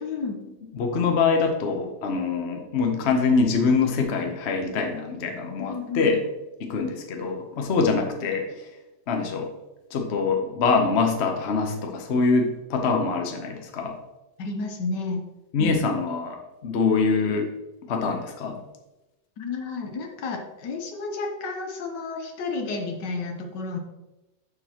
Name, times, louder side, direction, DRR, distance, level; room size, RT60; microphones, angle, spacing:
voice 1, 0.0-0.4 5.6-6.1 14.4-15.2 15.6-15.8 19.4-23.8, left 3 dB, 70° left, 4 dB, 1.5 m, -31 dB
voice 2, 0.7-6.2 6.6-8.7 9.1-9.5 9.9-13.9 15.5-17.5 17.9-18.5, left 4 dB, 50° left, 3 dB, 0.9 m, -24 dB
7.0 x 6.7 x 2.9 m, 0.99 s
omnidirectional pair, 2.0 m